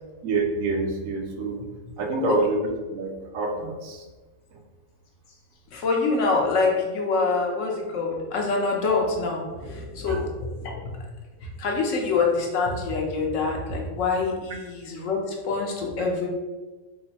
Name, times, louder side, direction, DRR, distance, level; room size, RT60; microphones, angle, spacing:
voice 1, 0.2-1.6 2.0-2.6 2.9-4.0 10.1-10.2, right 3 dB, 75° right, 2 dB, 1.0 m, -27 dB
voice 2, 5.7-10.9 11.4-16.3, left 4 dB, 65° left, 0 dB, 1.0 m, -25 dB
3.7 x 2.0 x 4.1 m, 1.2 s
omnidirectional pair, 1.5 m